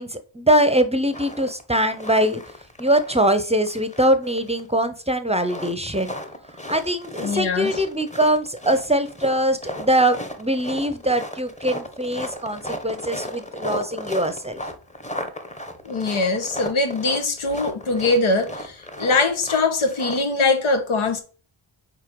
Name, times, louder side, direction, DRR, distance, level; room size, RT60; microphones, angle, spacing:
voice 1, 0.0-2.4 2.8-6.1 6.7-14.6, right 1 dB, 15° right, 0.7 m, -22 dB
sound 1, 1.1-1.6 1.9-3.4 3.6-4.8 5.4-20.2, left 1 dB, 15° left, 1.1 m, -35 dB
voice 2, 7.2-7.8 15.8-21.2, left 3 dB, 80° left, 1.3 m, -22 dB
4.5 x 4.3 x 5.2 m
cardioid pair, 70°, 48 cm